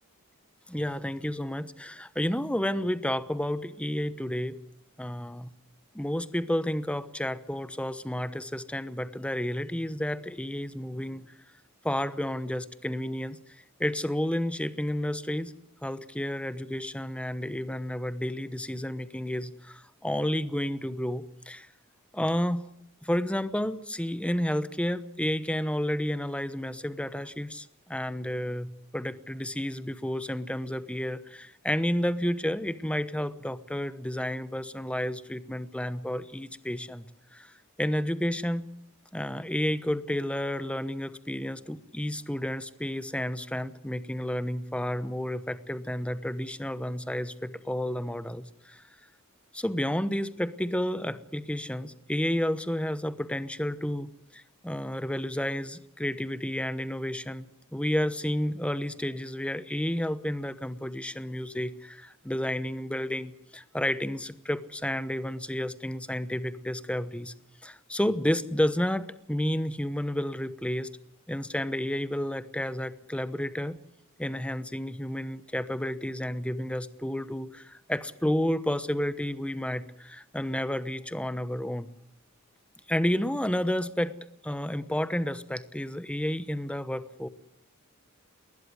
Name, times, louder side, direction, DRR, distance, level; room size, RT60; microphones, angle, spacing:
voice 1, 0.7-4.6 5.0-5.5 5.9-11.2 11.8-13.4 13.8-15.5 15.8-21.7 22.1-22.6 23.0-37.0 37.3-37.5 37.8-38.7 39.1-48.8 49.5-57.5 57.7-67.3 67.6-70.9 71.3-73.8 74.2-81.9 82.9-84.1 84.4-87.3, left 1 dB, 5° left, 14 dB, 1.0 m, -31 dB
20.5 x 20.0 x 9.7 m, 0.74 s
head